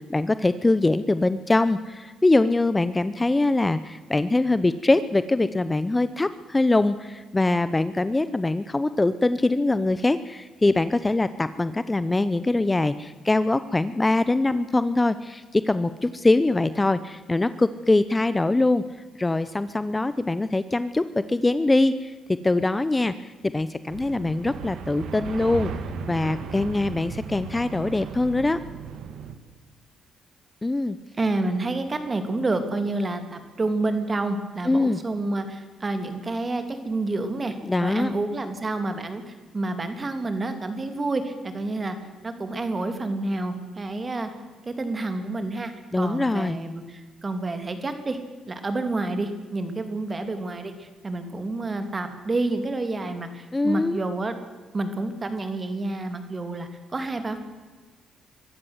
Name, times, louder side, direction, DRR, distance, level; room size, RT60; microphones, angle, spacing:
voice 1, 0.0-18.8 19.2-22.1 22.4-25.7 26.1-28.6 30.6-31.0 34.7-35.0 37.6-38.1 45.9-46.6 53.5-54.0, left 2 dB, 15° left, 14 dB, 0.7 m, -23 dB
sound 1, 23.9-29.3, right 6 dB, 70° right, 1.8 m, -36 dB
voice 2, 31.2-37.5 37.8-42.0 42.2-44.3 44.6-48.2 48.5-54.3 54.7-57.4, right 2 dB, 30° right, 8 dB, 2.9 m, -29 dB
23.5 x 13.5 x 8.1 m, 1.4 s
cardioid pair, 90°, 0 cm